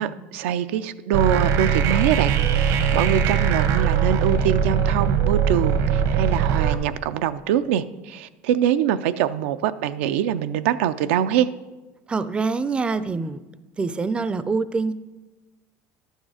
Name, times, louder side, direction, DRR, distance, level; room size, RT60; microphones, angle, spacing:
voice 1, 0.0-11.5, right 10 dB, 85° right, 11 dB, 0.4 m, -24 dB
sound 1, 1.1-6.7, right 7 dB, 65° right, 0.9 m, -21 dB
voice 2, 12.1-13.4 13.8-14.9, right 4 dB, 15° right, 14 dB, 0.4 m, -25 dB
11.5 x 6.4 x 4.8 m, 1.1 s
supercardioid pair, 120°, 7 cm